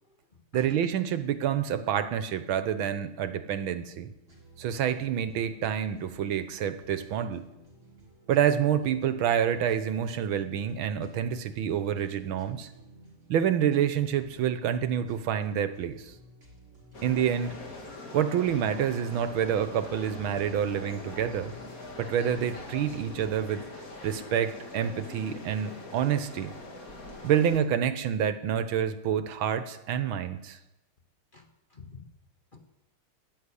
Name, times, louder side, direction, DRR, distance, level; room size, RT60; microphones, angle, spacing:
voice 1, 0.0-0.8 31.3-32.1 32.5-32.6, left 4 dB, 25° left, 4 dB, 1.4 m, -51 dB
voice 2, 0.5-4.1 4.6-7.4 8.3-12.7 13.3-16.1 17.0-17.5 18.1-21.5 22.0-23.6 24.0-26.5 27.2-30.6, right 9 dB, 80° right, 12 dB, 1.7 m, -28 dB
sound 1, 4.3-23.7, right 1 dB, 35° right, 4.7 m, -54 dB
sound 2, 16.9-27.6, left 2 dB, 45° left, 2.7 m, -43 dB
14.0 x 10.0 x 9.9 m, 0.95 s
omnidirectional pair, 2.2 m